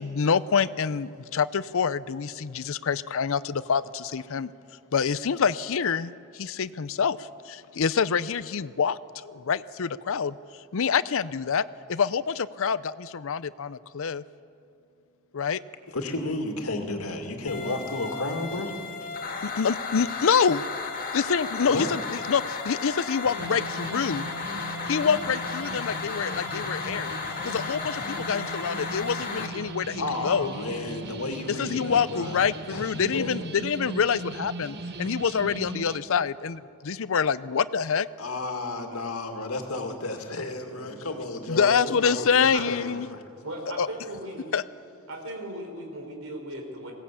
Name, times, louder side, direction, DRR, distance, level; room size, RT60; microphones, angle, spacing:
voice 1, 0.0-4.5 4.9-9.0 9.3-10.4 10.7-14.2 15.3-15.6 19.4-20.6 21.1-24.3 24.9-27.2 27.4-30.5 31.6-38.1 41.5-43.1 43.8-43.9 44.5-44.6, left 6 dB, 65° left, 15 dB, 0.5 m, -26 dB
voice 2, 15.9-18.8 21.6-21.9 30.0-32.4 32.7-32.9 33.1-33.3 37.5-37.6 38.2-43.2, left 2 dB, 85° left, 4 dB, 2.3 m, -32 dB
sound 1, 17.5-29.5, left 5 dB, 40° left, 1.8 m, -34 dB
sound 2, 23.2-36.0, right 2 dB, 50° right, 1.1 m, -38 dB
voice 3, 43.4-44.5 45.1-46.9, right 1 dB, 70° right, 2 dB, 4.3 m, -37 dB
21.0 x 17.5 x 8.5 m, 2.5 s
head